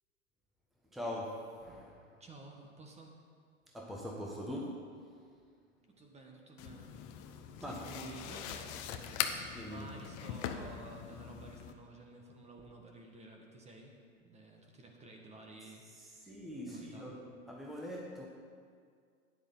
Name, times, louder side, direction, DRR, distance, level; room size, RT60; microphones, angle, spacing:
voice 1, 0.8-2.2 3.7-5.3 7.6-8.1 9.5-9.9 15.6-18.3, equal, ahead, -2 dB, 1.3 m, -43 dB
voice 2, 2.2-3.2 5.9-7.1 7.7-16.3 16.7-17.1, right 2 dB, 15° right, 1 dB, 1.5 m, -53 dB
sound 1, 6.6-11.7, left 9 dB, 40° left, 0.9 m, -41 dB
12.5 x 10.0 x 3.9 m, 2.1 s
hypercardioid pair, 105°, 39 cm